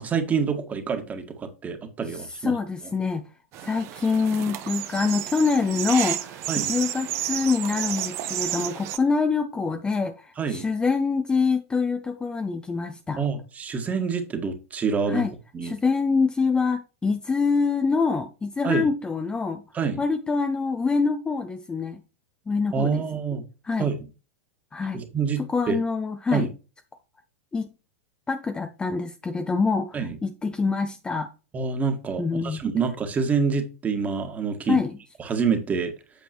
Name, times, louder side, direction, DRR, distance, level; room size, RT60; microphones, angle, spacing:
voice 1, 0.0-2.5 6.5-6.7 10.4-10.7 13.2-15.2 15.5-15.7 18.6-18.9 19.7-20.0 22.7-23.4 23.8-24.0 24.9-25.4 25.7-25.8 26.3-26.5 29.9-30.2 31.5-34.8 35.2-35.9, right 5 dB, 20° right, 1.8 m, -26 dB
voice 2, 2.1-3.2 3.6-13.2 15.1-15.3 15.6-19.6 20.0-22.0 22.5-23.0 23.6-23.9 24.7-25.0 25.5-26.5 27.5-27.7 28.3-31.3 32.2-32.6 34.7-34.9, left 4 dB, 10° left, 0.7 m, -25 dB
sound 1, 3.5-9.0, right 13 dB, 35° right, 1.0 m, -31 dB
8.5 x 7.0 x 3.0 m
figure-of-eight pair, 100°, 8 cm